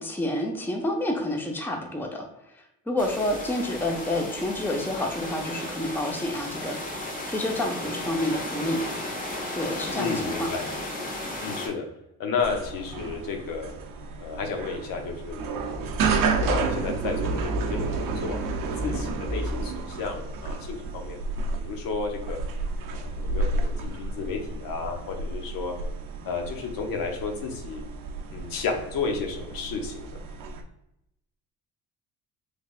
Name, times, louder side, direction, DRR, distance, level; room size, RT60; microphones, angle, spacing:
voice 1, 0.0-2.3 2.9-7.0 7.3-8.8 9.5-10.5, left 1 dB, 5° left, 2 dB, 0.7 m, -29 dB
sound 1, 3.0-11.7, left 1 dB, 25° left, 1.0 m, -34 dB
voice 2, 10.0-10.7 11.4-11.8 12.2-13.7 14.2-15.9 16.3-21.2 21.6-22.4 22.9-25.8 26.2-27.8 28.3-30.1, left 5 dB, 70° left, 3 dB, 0.9 m, -32 dB
sound 2, 12.4-30.6, right 3 dB, 65° right, 0.6 m, -31 dB
3.4 x 3.3 x 2.4 m, 0.84 s
supercardioid pair, 60°, 36 cm